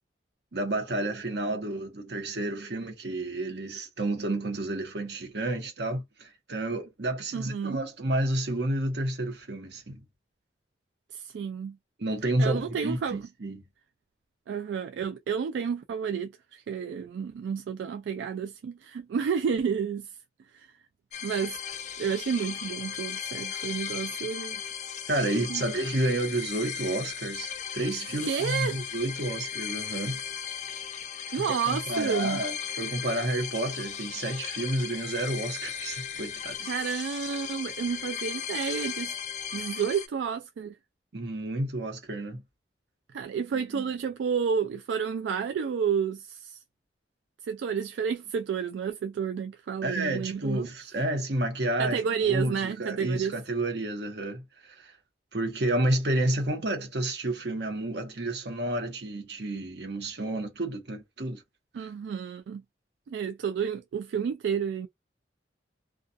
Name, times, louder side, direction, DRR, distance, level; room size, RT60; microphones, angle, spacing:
voice 1, 0.5-10.0 12.0-13.6 25.1-30.2 31.3-36.7 41.1-42.4 43.7-43.9 49.8-54.9 55.3-61.4, right 1 dB, 65° right, 1.0 m, -30 dB
voice 2, 7.3-7.8 11.1-11.8 12.4-13.2 14.5-20.1 20.5-20.7 21.2-21.6 22.0-24.6 25.5-25.6 28.2-28.8 31.3-32.4 36.6-39.1 39.5-40.8 43.1-46.6 47.4-50.7 51.8-53.3 61.7-62.6 63.1-64.9, right 7 dB, 85° right, 0.3 m, -30 dB
sound 1, 21.1-40.1, left 8 dB, 40° left, 0.4 m, -36 dB
2.4 x 2.2 x 2.5 m
head